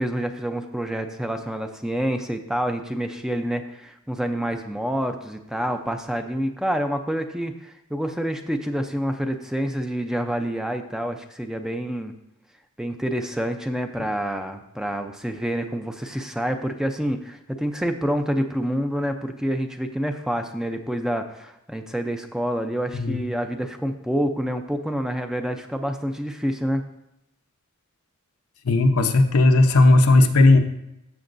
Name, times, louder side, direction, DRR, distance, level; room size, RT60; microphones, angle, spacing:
voice 1, 0.0-12.1 12.8-26.8, equal, 5° right, 5 dB, 0.5 m, -27 dB
voice 2, 28.6-30.6, left 2 dB, 75° left, 6 dB, 0.8 m, -16 dB
14.0 x 7.0 x 2.6 m, 0.85 s
head